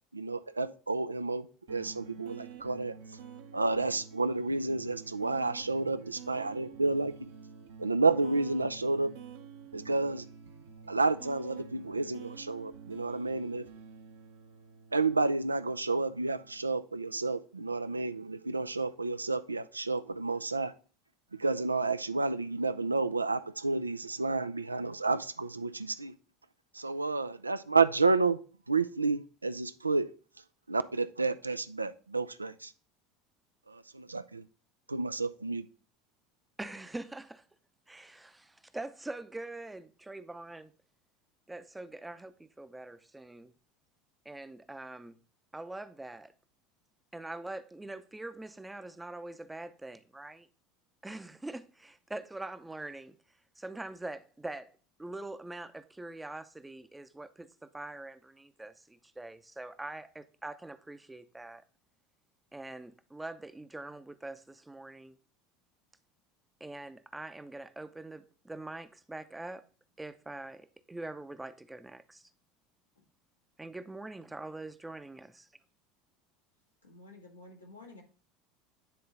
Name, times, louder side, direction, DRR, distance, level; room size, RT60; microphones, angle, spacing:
voice 1, 0.1-3.0 3.5-7.3 7.8-9.1 9.7-10.3 10.9-13.7 14.9-20.7 21.3-26.1 26.7-28.4 28.7-30.1 30.7-32.7 33.7-34.4 34.9-35.7, right 3 dB, 85° right, 0.4 m, -30 dB
sound 1, 1.7-16.8, right 6 dB, 65° right, 0.9 m, -49 dB
voice 2, 36.6-37.4 37.9-40.7 41.5-43.5 44.2-45.2 45.5-46.3 47.1-50.5 51.0-53.2 53.6-61.6 62.5-65.2 66.6-69.7 70.0-72.3 73.6-75.5, right 2 dB, 10° right, 0.6 m, -43 dB
voice 3, 76.8-78.0, left 2 dB, 90° left, 1.8 m, -51 dB
9.6 x 3.8 x 4.0 m
figure-of-eight pair, 70°, 0 cm